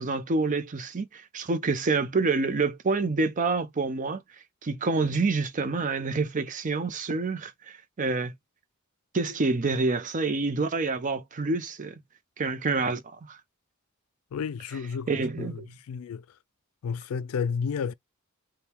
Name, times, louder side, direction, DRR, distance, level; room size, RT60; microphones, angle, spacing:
voice 1, 0.0-4.2 4.6-8.3 9.1-11.9 12.4-13.4 15.1-15.7, right 3 dB, 35° right, 0.5 m, -27 dB
voice 2, 14.3-15.6 15.9-16.2 16.8-17.9, left 6 dB, 80° left, 0.3 m, -31 dB
3.5 x 2.2 x 4.3 m
head